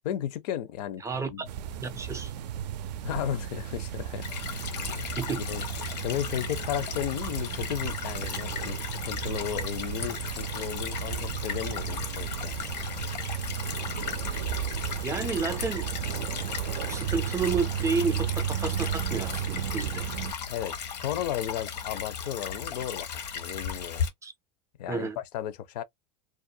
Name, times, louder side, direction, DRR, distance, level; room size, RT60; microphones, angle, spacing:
voice 1, 0.0-1.4 3.0-4.3 4.6-4.9 5.4-12.5 20.5-24.1 24.8-25.8, left 10 dB, 70° left, 0.5 m, -34 dB
voice 2, 1.0-1.5 1.8-2.3 5.2-5.4 14.3-14.4 15.0-15.9 16.9-20.1 24.2-24.3 24.9-25.2, right 4 dB, 15° right, 0.3 m, -31 dB
sound 1, 1.5-20.3, right 10 dB, 80° right, 0.4 m, -34 dB
Stream / Trickle dribble, 4.2-24.1, left 7 dB, 90° left, 0.9 m, -36 dB
2.4 x 2.1 x 2.6 m
hypercardioid pair, 110°, 21 cm